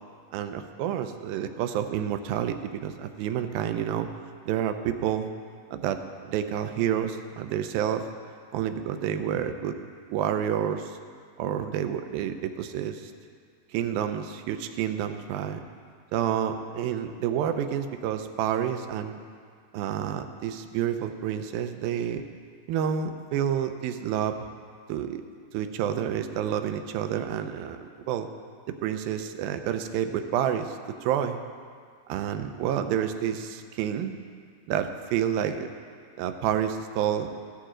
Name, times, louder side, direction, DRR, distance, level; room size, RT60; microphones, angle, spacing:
voice 1, 0.3-4.1 4.5-5.3 5.7-8.1 8.5-9.8 10.1-11.0 11.4-13.1 13.7-15.6 16.1-19.2 19.7-22.2 22.7-24.5 24.9-25.3 25.5-28.3 28.8-31.4 32.1-34.2 34.7-35.7 36.2-37.3, right 9 dB, 90° right, 8 dB, 2.5 m, -29 dB
14.5 x 11.5 x 3.8 m, 2.1 s
omnidirectional pair, 4.1 m